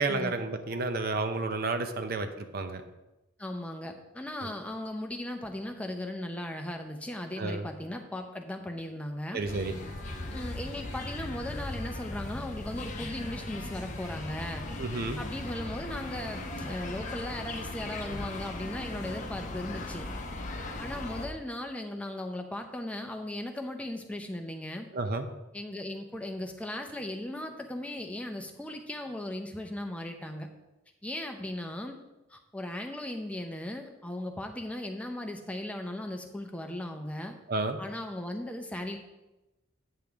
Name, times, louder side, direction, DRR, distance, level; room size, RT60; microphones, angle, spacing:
voice 1, 0.0-2.8 7.4-7.7 9.3-9.7 14.8-15.2 24.9-25.3 37.5-37.8, right 3 dB, 50° right, 8 dB, 0.6 m, -31 dB
voice 2, 3.4-9.4 10.3-14.6 15.2-20.1 20.8-24.9 25.5-30.5 31.0-32.0 32.3-37.3 37.8-39.0, left 1 dB, 5° left, 4 dB, 0.6 m, -37 dB
sound 1, 9.5-21.3, left 2 dB, 40° left, 0.8 m, -38 dB
8.9 x 6.8 x 3.5 m, 1.0 s
head